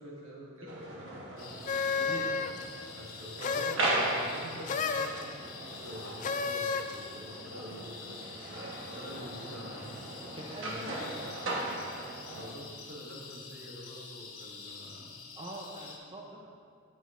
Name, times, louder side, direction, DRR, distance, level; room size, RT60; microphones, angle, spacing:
voice 1, 0.0-2.1 2.9-8.2 8.5-9.9 10.6-11.0 12.3-15.1, equal, 75° right, -3 dB, 1.7 m, -46 dB
sound 1, 0.7-12.5, right 1 dB, 60° right, 1.2 m, -38 dB
sound 2, 1.4-16.0, left 5 dB, 85° left, 1.1 m, -48 dB
sound 3, 1.7-2.7 3.4-3.9 4.7-5.2 6.2-7.0, left 5 dB, 35° left, 0.3 m, -31 dB
voice 2, 10.3-11.1 15.4-16.4, right 1 dB, 25° right, -1 dB, 0.6 m, -43 dB
9.3 x 8.2 x 2.5 m, 2.3 s
head